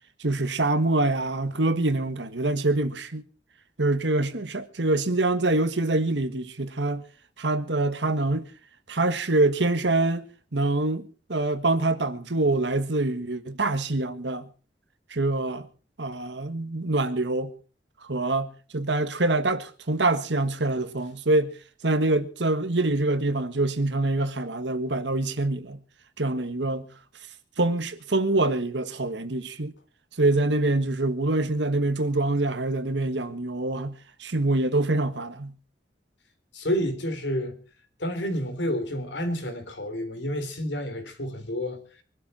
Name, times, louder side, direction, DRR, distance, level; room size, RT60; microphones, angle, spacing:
voice 1, 0.2-3.2 3.8-7.0 7.4-8.5 8.9-10.2 10.5-14.5 15.1-15.7 16.0-17.5 18.1-21.5 21.8-25.8 26.2-26.9 27.6-29.7 30.2-33.9 34.2-35.5, right 2 dB, 80° right, 1.5 m, -25 dB
voice 2, 36.5-37.6 38.0-41.8, equal, 80° left, 3.5 m, -29 dB
23.5 x 12.5 x 4.3 m
head